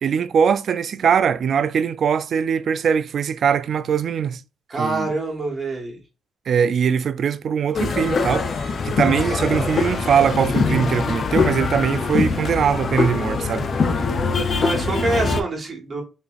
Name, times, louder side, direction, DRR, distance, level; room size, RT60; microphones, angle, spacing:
voice 1, 0.0-4.4 4.8-5.1 6.5-13.7, right 7 dB, 55° right, 0.4 m, -21 dB
voice 2, 4.7-6.0 9.2-9.3 14.6-16.0, right 2 dB, 40° right, 1.4 m, -25 dB
sound 1, 7.7-15.4, left 4 dB, 45° left, 0.6 m, -22 dB
5.0 x 2.6 x 2.4 m
cardioid pair, 90°, 0 cm